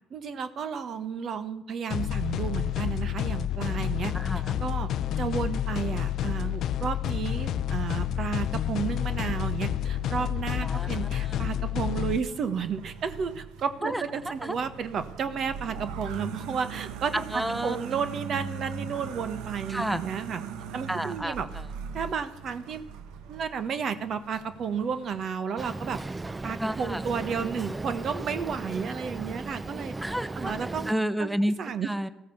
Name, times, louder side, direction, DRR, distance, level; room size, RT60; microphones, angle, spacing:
voice 1, 0.1-4.1 4.6-4.9 5.2-20.4 20.7-21.5 21.9-22.8 23.3-26.0 26.4-30.0 30.3-30.8 31.2-31.3 31.6-31.9, right 6 dB, 60° right, 12 dB, 1.3 m, -32 dB
sound 1, 1.9-12.2, left 11 dB, 65° left, 0.5 m, -29 dB
voice 2, 4.1-4.6 10.6-10.9 11.3-11.4 13.8-14.0 14.4-14.5 17.3-17.8 19.7-20.0 20.9-21.3 26.6-27.0 30.0-30.5 30.9-31.5 31.8-32.1, equal, 5° right, 13 dB, 1.0 m, -30 dB
sound 2, 9.1-11.4 12.2-25.3, right 7 dB, 80° right, 1.1 m, -41 dB
Boat Water vehicle, 25.6-30.9, right 2 dB, 20° right, 0.6 m, -36 dB
14.0 x 14.0 x 7.0 m, 0.88 s
hypercardioid pair, 60°, 0 cm